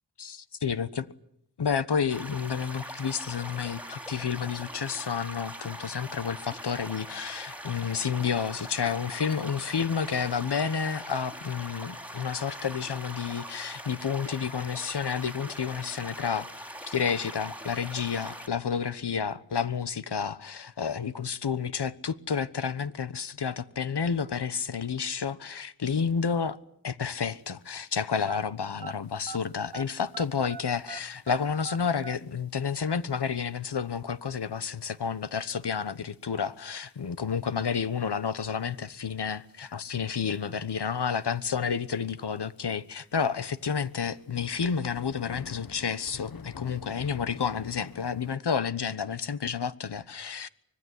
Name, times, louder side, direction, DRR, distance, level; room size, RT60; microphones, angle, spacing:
voice 1, 0.2-1.0 1.6-16.5 16.9-26.6 26.8-50.5, left 6 dB, 85° left, 1.2 m, -30 dB
sound 1, 2.1-18.5, equal, 5° right, 3.5 m, -42 dB
sound 2, 28.2-29.9 30.1-32.2, right 7 dB, 80° right, 1.0 m, -41 dB
sound 3, 29.7-29.8 30.1-30.4 31.1-31.3 31.9-32.0 32.6-32.7 33.1-33.2 33.4-33.5 34.6-34.8 35.2-35.3 36.2-36.3 36.9-37.3 37.7-37.8 38.4-39.0 40.1-40.4 40.7-40.8 41.1-41.2 41.4-41.5 42.1-42.2 42.6-42.7 43.2-48.4, left 6 dB, 60° left, 1.0 m, -47 dB
25.0 x 20.0 x 9.9 m
wide cardioid pair, 70°, 40 cm